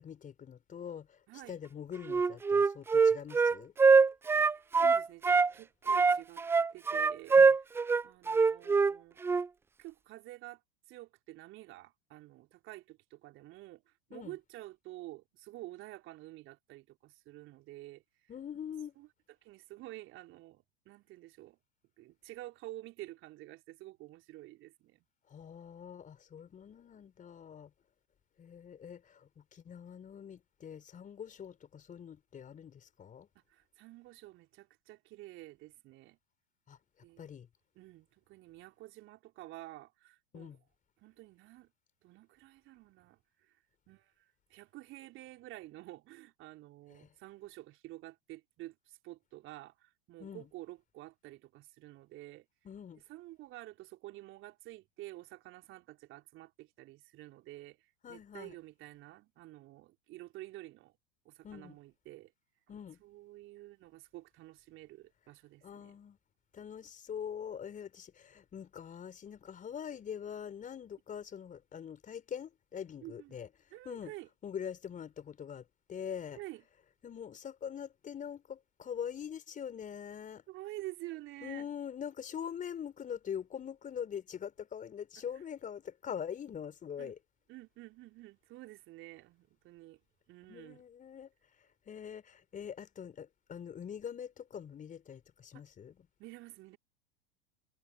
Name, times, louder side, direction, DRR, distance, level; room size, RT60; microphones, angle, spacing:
voice 1, 0.0-3.7 7.4-7.5 14.1-14.4 18.3-18.9 25.3-27.7 28.4-33.3 36.7-36.8 37.2-37.5 40.3-40.6 46.9-47.1 50.2-50.5 52.6-53.0 58.0-58.6 61.4-61.8 62.7-63.0 65.6-66.2 66.5-73.5 73.9-74.1 74.4-76.4 77.0-80.4 81.4-87.2 90.5-91.3 91.6-96.0, left 8 dB, 25° left, 5.2 m, -43 dB
Wind instrument woodwind instrument, 2.1-5.5 5.9-8.9 9.2-9.5, right 4 dB, 10° right, 0.4 m, -24 dB
voice 2, 4.3-6.4 6.7-7.4 8.0-9.2 9.8-10.6 10.9-18.3 19.0-19.1 19.4-21.6 22.0-25.1 33.5-36.2 37.0-37.2 37.8-40.6 41.0-41.7 42.0-43.6 43.9-52.5 53.1-60.9 61.3-62.3 63.0-66.0 73.0-73.4 73.7-74.3 76.3-76.6 80.5-81.7 87.0-87.1 87.5-90.0 90.3-90.8 95.5-95.6 96.2-96.8, right 17 dB, 40° right, 3.3 m, -50 dB
figure-of-eight pair, 85°, 30 cm